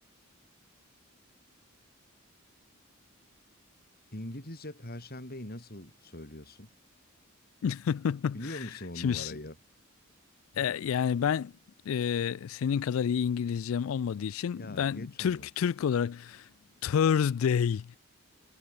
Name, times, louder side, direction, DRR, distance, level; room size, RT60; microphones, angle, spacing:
voice 1, 4.1-6.7 8.3-9.6 14.5-15.5, left 1 dB, 50° left, 5.4 m, -42 dB
voice 2, 7.6-8.6 9.0-9.3 10.6-11.5 11.9-16.4 16.8-18.0, left 7 dB, 75° left, 0.3 m, -29 dB
head